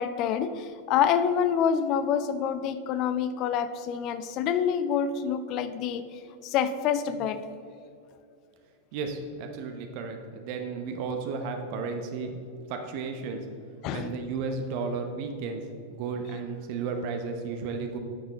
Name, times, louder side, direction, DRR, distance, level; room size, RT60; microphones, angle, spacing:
voice 1, 0.0-6.0 6.4-7.4 13.8-14.1, left 8 dB, 40° left, 12 dB, 0.5 m, -27 dB
voice 2, 8.9-12.4 12.7-13.4 13.9-15.6 15.9-18.0, right 4 dB, 45° right, 5 dB, 0.8 m, -33 dB
9.4 x 6.3 x 4.0 m, 2.4 s
figure-of-eight pair, 90°, 0 cm